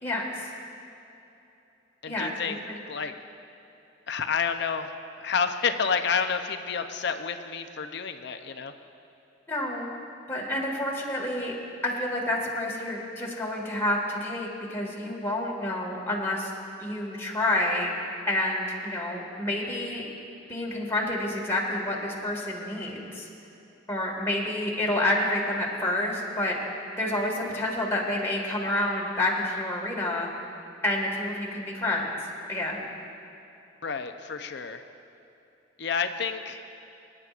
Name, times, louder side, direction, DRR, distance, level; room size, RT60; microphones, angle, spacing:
voice 1, 0.0-0.5 2.1-2.7 9.5-9.9 10.3-11.6 11.8-16.5 16.8-17.9 18.3-20.1 20.5-23.3 23.9-26.6 27.0-30.3 30.8-32.1 32.5-32.8, left 1 dB, 15° left, -4 dB, 1.8 m, -29 dB
voice 2, 2.0-2.6 2.9-3.1 4.1-4.9 5.2-8.7 33.8-34.8 35.8-36.6, left 6 dB, 65° left, 8 dB, 0.6 m, -29 dB
26.5 x 9.8 x 2.5 m, 2.9 s
head